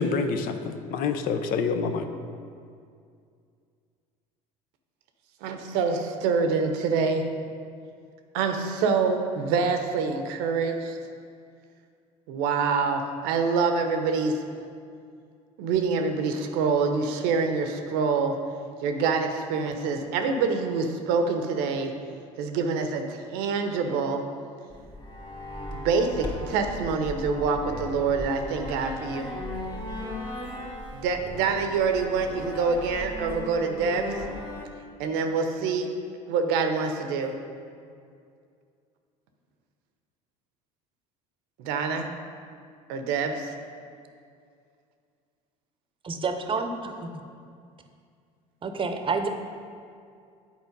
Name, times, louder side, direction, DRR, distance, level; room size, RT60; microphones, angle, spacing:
voice 1, 0.0-2.1, left 5 dB, 55° left, 8 dB, 0.6 m, -27 dB
voice 2, 5.4-7.2 8.3-11.0 12.3-14.4 15.6-18.4 18.8-21.9 22.4-24.2 25.7-29.3 30.9-34.2 35.0-35.9 36.3-37.4 41.6-42.1 42.9-43.5, right 5 dB, 70° right, 6 dB, 0.8 m, -26 dB
sound 1, 24.7-34.7, left 1 dB, 25° left, 1.5 m, -37 dB
voice 3, 46.0-46.9 48.6-49.3, right 4 dB, 30° right, 6 dB, 0.8 m, -28 dB
8.3 x 4.3 x 5.2 m, 2.3 s
hypercardioid pair, 75°, 17 cm